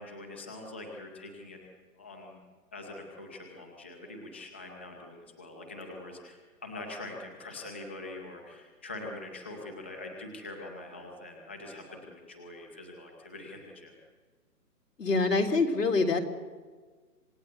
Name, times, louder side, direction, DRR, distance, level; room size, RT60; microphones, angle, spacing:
voice 1, 0.0-1.6 2.0-2.4 2.7-13.9, left 2 dB, 10° left, 1 dB, 0.6 m, -44 dB
voice 2, 15.0-16.2, left 3 dB, 80° left, 4 dB, 3.8 m, -25 dB
26.5 x 18.0 x 8.0 m, 1.4 s
hypercardioid pair, 165°, 47 cm